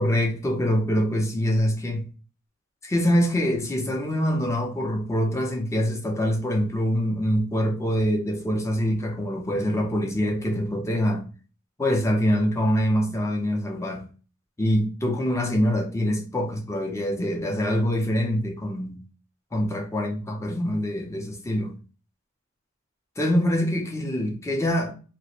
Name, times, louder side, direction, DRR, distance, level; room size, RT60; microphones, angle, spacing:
voice 1, 0.0-2.1 2.8-11.2 11.8-14.0 14.6-19.0 19.5-21.7 23.2-25.0, equal, 15° left, 0.5 m, -24 dB
2.4 x 2.1 x 2.8 m
head